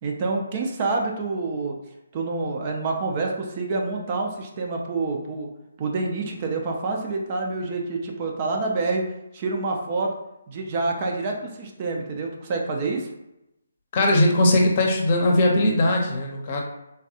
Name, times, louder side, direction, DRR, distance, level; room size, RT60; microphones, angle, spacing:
voice 1, 0.0-1.8 2.1-5.5 5.8-9.1 9.3-10.1 10.5-13.1, right 3 dB, 35° right, 1 dB, 0.5 m, -27 dB
voice 2, 13.9-16.6, left 1 dB, 40° left, 0 dB, 0.7 m, -20 dB
3.4 x 2.3 x 2.7 m, 0.88 s
figure-of-eight pair, 145°, 0 cm